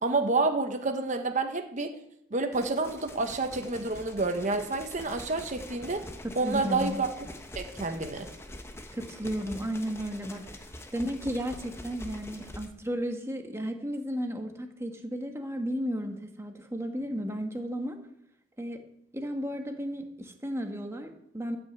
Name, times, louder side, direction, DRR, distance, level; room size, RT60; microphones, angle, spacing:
voice 1, 0.0-1.9 2.3-6.0 6.4-7.1 7.5-8.3, right 3 dB, 40° right, 6 dB, 1.0 m, -29 dB
sound 1, 2.5-12.7, left 1 dB, 15° left, 1.1 m, -44 dB
voice 2, 6.2-7.0 8.9-10.5 10.9-18.0 18.6-18.8 19.1-21.6, equal, 15° right, 4 dB, 1.5 m, -34 dB
14.0 x 6.3 x 8.2 m, 0.76 s
head